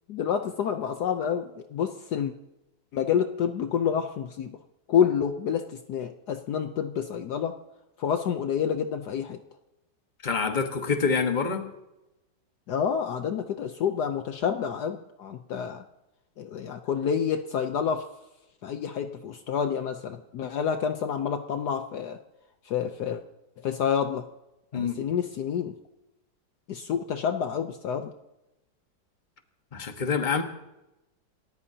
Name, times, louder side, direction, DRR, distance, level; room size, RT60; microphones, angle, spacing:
voice 1, 0.1-2.3 2.9-4.5 4.9-7.5 8.0-9.4 12.7-15.8 16.4-18.1 18.6-22.2 22.6-23.2 23.6-24.3 24.7-25.7 26.7-28.1, left 8 dB, 65° left, 7 dB, 1.2 m, -28 dB
voice 2, 10.2-11.7 24.7-25.0 29.7-30.4, left 5 dB, 30° left, 5 dB, 1.4 m, -26 dB
29.0 x 14.0 x 2.8 m, 0.96 s
omnidirectional pair, 2.0 m